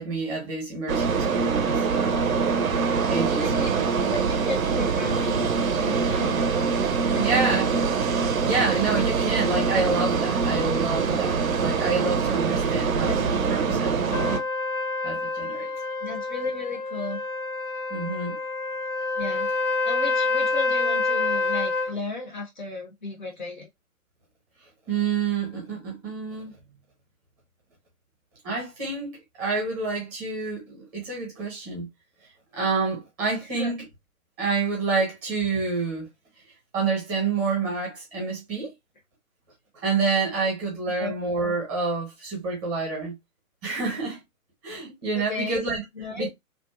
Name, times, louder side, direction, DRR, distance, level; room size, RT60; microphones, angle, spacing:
voice 1, 0.0-2.3 3.1-3.7 7.1-7.7 8.2-14.1 15.0-15.7 17.9-18.4 24.9-26.5 28.4-31.9 32.5-33.8 34.4-36.1 36.7-38.7 39.7-43.1 43.6-44.2 44.6-45.8 46.1-46.3, right 4 dB, 15° right, 0.8 m, -28 dB
sound 1, 0.9-14.4, right 5 dB, 70° right, 0.6 m, -24 dB
voice 2, 3.4-3.7 4.0-6.5 7.1-7.6 13.0-13.3 13.6-13.8 16.0-17.2 19.2-19.5 19.8-23.7 33.5-33.9 41.0-41.1 45.1-45.6 46.0-46.3, left 3 dB, 35° left, 0.5 m, -34 dB
Trumpet, 14.1-21.9, left 3 dB, 85° left, 0.7 m, -27 dB
2.6 x 2.2 x 2.3 m
figure-of-eight pair, 135°, 43 cm